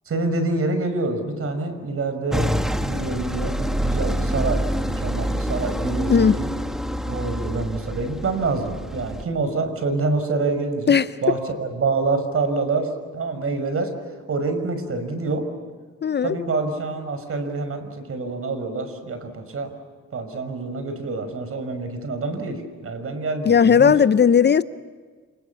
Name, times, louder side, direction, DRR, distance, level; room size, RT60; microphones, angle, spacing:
voice 1, 0.1-2.6 2.9-6.5 7.0-10.9 11.2-13.9 14.3-15.5 16.2-19.7 20.1-23.9, right 3 dB, 50° right, 6.0 m, -26 dB
sound 1, 2.3-9.2, equal, ahead, 1.6 m, -26 dB
voice 2, 16.0-16.4 23.4-24.6, left 7 dB, 35° left, 0.8 m, -16 dB
29.0 x 28.0 x 7.1 m
cardioid pair, 90°, 30 cm